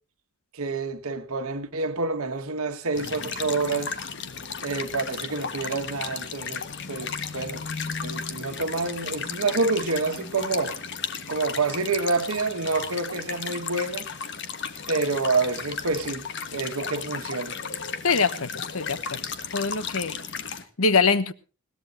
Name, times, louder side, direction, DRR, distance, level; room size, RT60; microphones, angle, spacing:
voice 1, 0.5-3.9 4.6-7.6 7.9-10.8 11.3-14.1 14.9-16.3 16.5-17.6, right 3 dB, 85° right, 1.6 m, -28 dB
sound 1, 2.9-20.6, left 6 dB, 55° left, 1.4 m, -34 dB
voice 2, 18.0-19.2 19.5-20.1 20.8-21.3, left 4 dB, 80° left, 1.1 m, -23 dB
21.0 x 17.5 x 2.7 m
head